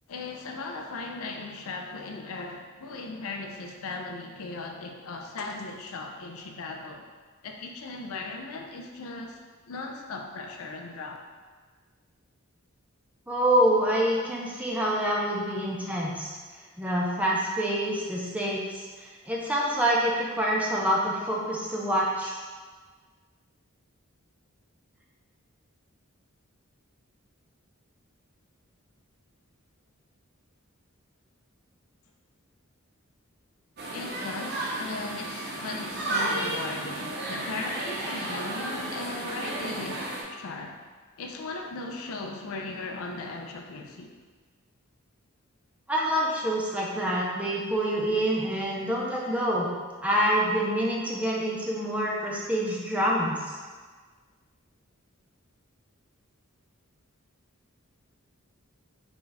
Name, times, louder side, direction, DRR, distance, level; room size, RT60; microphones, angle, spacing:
voice 1, 0.1-7.0 7.4-9.4 9.7-11.2 33.9-40.8 41.2-44.1, left 3 dB, 80° left, 3 dB, 0.4 m, -37 dB
voice 2, 13.3-16.3 16.8-22.4 45.9-49.7 50.0-53.5, equal, 5° right, -3 dB, 0.4 m, -26 dB
sound 1, 33.8-40.2, right 1 dB, 50° right, 0.6 m, -33 dB
3.8 x 2.3 x 3.9 m, 1.5 s
head